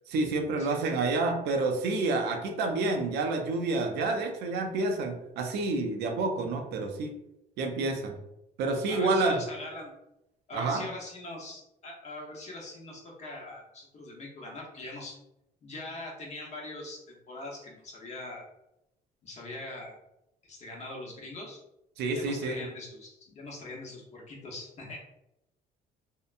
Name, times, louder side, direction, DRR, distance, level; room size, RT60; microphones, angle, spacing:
voice 1, 0.1-7.1 7.6-8.1 8.6-9.4 10.5-10.9 22.0-22.7, right 3 dB, 80° right, 4 dB, 0.5 m, -29 dB
voice 2, 8.9-9.9 10.5-15.2 15.6-18.4 19.2-19.9 20.4-21.6 22.1-25.0, left 2 dB, 40° left, -2 dB, 0.9 m, -42 dB
2.7 x 2.2 x 2.5 m, 0.85 s
cardioid pair, 110°, 17 cm